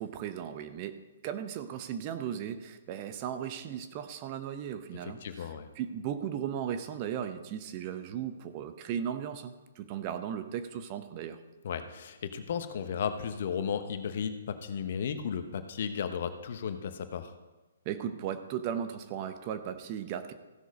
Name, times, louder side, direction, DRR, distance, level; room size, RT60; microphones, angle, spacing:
voice 1, 0.0-11.4 17.9-20.3, right 9 dB, 35° right, 9 dB, 0.8 m, -36 dB
voice 2, 5.0-5.7 11.6-17.3, left 7 dB, 55° left, 9 dB, 1.0 m, -34 dB
15.5 x 6.3 x 5.2 m, 1.1 s
hypercardioid pair, 135°, 0 cm